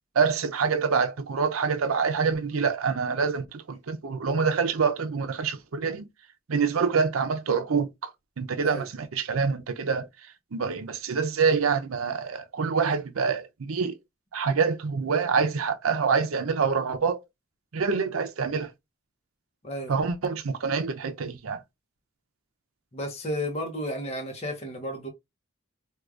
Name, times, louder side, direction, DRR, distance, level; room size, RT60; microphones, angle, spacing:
voice 1, 0.1-6.1 6.5-8.1 8.4-10.1 10.5-14.0 14.3-17.2 17.7-18.7 19.9-21.6, right 5 dB, 90° right, 0.6 m, -26 dB
voice 2, 22.9-25.1, equal, 30° left, 0.8 m, -32 dB
4.7 x 2.3 x 2.4 m
head